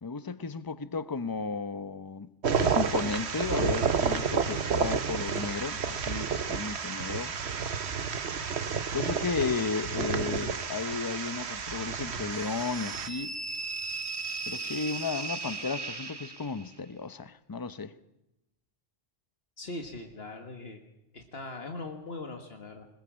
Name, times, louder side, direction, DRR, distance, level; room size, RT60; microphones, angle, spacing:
voice 1, 0.0-2.3 2.6-7.3 8.9-13.3 14.5-17.9, left 4 dB, 25° left, 0.7 m, -34 dB
sound 1, 2.4-13.1, right 6 dB, 85° right, 1.4 m, -30 dB
sound 2, 12.6-16.7, right 4 dB, 25° right, 1.1 m, -37 dB
voice 2, 19.6-20.8 21.1-22.9, left 2 dB, 70° left, 1.9 m, -40 dB
21.5 x 20.5 x 7.4 m
omnidirectional pair, 1.1 m